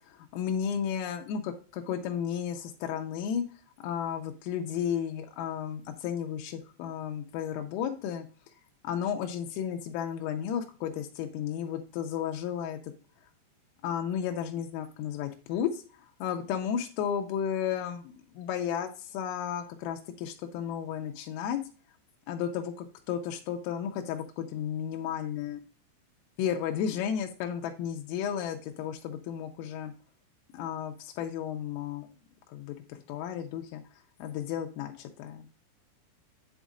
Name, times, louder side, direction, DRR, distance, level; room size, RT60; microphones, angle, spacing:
voice 1, 0.1-3.4 3.8-8.3 8.8-12.8 13.8-15.8 16.2-21.6 22.3-25.6 26.4-29.9 30.5-32.1 32.5-33.8 34.2-35.5, left 8 dB, 85° left, 4 dB, 3.2 m, -33 dB
8.1 x 8.0 x 2.5 m, 0.37 s
omnidirectional pair, 6.0 m